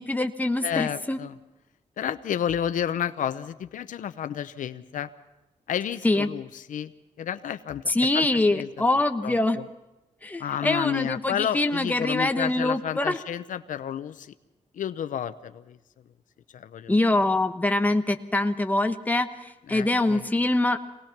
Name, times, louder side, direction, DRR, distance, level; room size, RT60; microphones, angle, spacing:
voice 1, 0.0-1.2 6.0-6.3 7.9-9.6 10.2-13.2 16.9-20.8, left 2 dB, 10° left, 6 dB, 1.1 m, -24 dB
voice 2, 0.6-1.3 2.0-5.1 5.7-6.9 7.2-8.8 9.2-9.6 10.4-14.3 14.7-15.8 16.5-17.0 19.7-20.3, left 9 dB, 90° left, 11 dB, 0.7 m, -31 dB
24.0 x 18.5 x 5.9 m, 0.98 s
wide cardioid pair, 110°, 13 cm